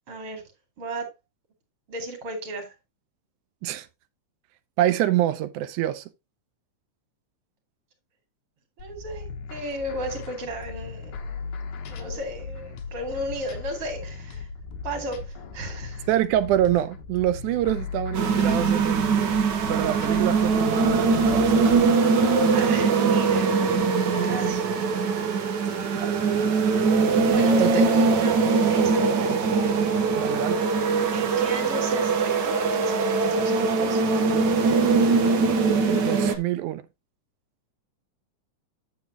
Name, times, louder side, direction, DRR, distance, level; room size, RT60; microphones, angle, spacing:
voice 1, 0.1-0.4 0.8-1.1 1.9-2.7 8.8-11.5 11.9-14.5 14.8-16.1 22.5-23.6 24.2-24.7 27.2-29.7 31.1-35.3, right 1 dB, 45° right, 3.0 m, -35 dB
voice 2, 4.8-6.0 16.1-19.4 19.7-21.9 26.0-26.2 27.6-27.8 30.2-30.6 35.9-36.8, right 13 dB, 85° right, 2.1 m, -26 dB
sound 1, 8.8-21.9, left 4 dB, 75° left, 2.4 m, -37 dB
sound 2, 18.1-36.3, right 4 dB, 70° right, 1.0 m, -22 dB
9.1 x 7.3 x 2.9 m
omnidirectional pair, 3.5 m